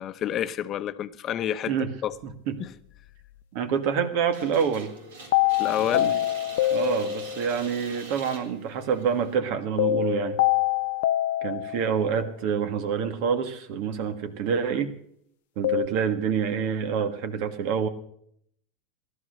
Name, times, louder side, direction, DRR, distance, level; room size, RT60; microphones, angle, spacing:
voice 1, 0.0-1.7 2.0-2.1 2.6-2.8 5.6-6.1 6.6-6.8, left 10 dB, 35° left, 0.9 m, -29 dB
voice 2, 3.5-4.9 5.9-6.2 6.7-10.4 11.4-14.9 15.6-17.9, right 7 dB, 60° right, 1.8 m, -27 dB
sound 1, 4.3-9.4, right 3 dB, 90° right, 4.2 m, -44 dB
sound 2, 5.3-7.6 9.8-12.1 15.6-15.9, left 13 dB, 75° left, 0.5 m, -25 dB
15.5 x 12.0 x 6.4 m
supercardioid pair, 115°, 0 cm